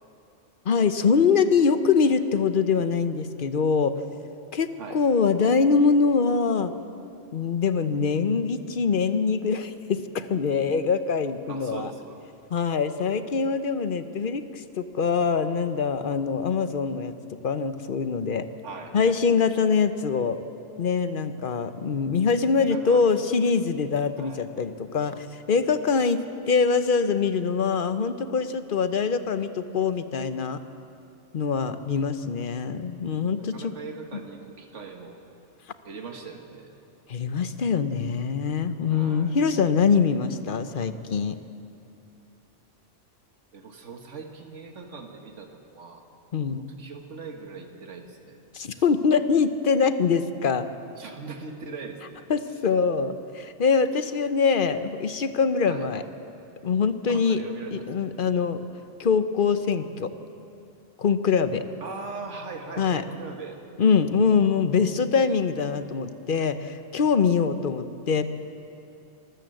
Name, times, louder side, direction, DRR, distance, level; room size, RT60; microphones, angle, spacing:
voice 1, 0.6-4.0 4.5-6.7 7.3-11.9 12.5-17.1 17.4-18.5 18.9-20.4 20.8-30.6 31.3-33.7 37.1-41.4 46.3-46.6 48.5-50.7 52.3-56.0 56.6-57.4 57.7-58.6 59.0-60.1 61.0-61.6 62.8-63.0 63.8-68.2, left 5 dB, 50° left, 11 dB, 1.0 m, -24 dB
voice 2, 11.5-12.2 18.6-19.2 22.6-23.3 24.2-24.5 33.5-35.2 35.8-36.7 38.9-39.4 43.5-46.1 46.5-48.4 48.7-48.8 51.0-52.3 55.6-55.9 57.1-57.9 61.8-63.6, right 4 dB, 80° right, 4 dB, 1.9 m, -40 dB
25.5 x 13.5 x 7.8 m, 2.7 s
omnidirectional pair, 1.2 m